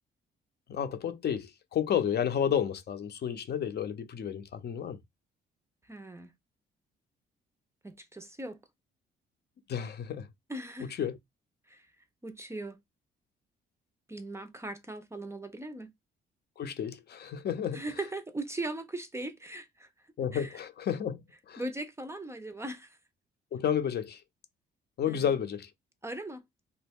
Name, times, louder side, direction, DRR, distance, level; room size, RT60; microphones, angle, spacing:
voice 1, 0.7-5.0 9.7-10.3 11.0-11.2 16.6-17.8 20.2-21.2 21.5-21.6 23.5-24.2 25.0-25.7, left 8 dB, 55° left, 0.7 m, -31 dB
voice 2, 5.8-6.3 7.8-8.6 10.5-11.0 11.7-11.9 12.2-12.8 14.1-15.9 17.7-19.9 20.3-20.6 21.6-23.0 25.1-25.2 26.0-26.4, right 2 dB, 15° right, 0.5 m, -39 dB
3.0 x 2.1 x 3.5 m
cardioid pair, 90°, 20 cm